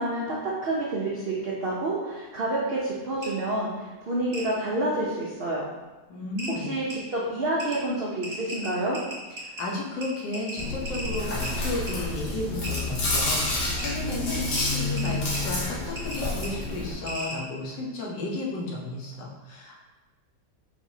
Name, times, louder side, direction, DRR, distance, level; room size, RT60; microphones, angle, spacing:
voice 1, 0.0-3.7 4.1-5.6 6.5-9.0, right 1 dB, 80° right, -5 dB, 0.5 m, -28 dB
sound 1, 3.2-3.3 4.3-4.4 5.8-5.9 6.4-6.5 6.9-7.0 7.6-7.8 8.2-9.6 10.0-10.1 10.3-11.5 11.9-12.0 12.6-12.8 13.5-13.9 14.6-14.7 15.0-15.4 15.9-16.2 16.4-16.5 17.1-17.4, right 1 dB, 30° right, 1.5 m, -36 dB
voice 2, 6.1-6.7 9.4-19.8, left 2 dB, 90° left, -2 dB, 1.6 m, -33 dB
Chewing mastication, 10.6-16.9, left 2 dB, 70° left, 1.5 m, -29 dB
5.0 x 3.4 x 2.7 m, 1.2 s
omnidirectional pair, 1.9 m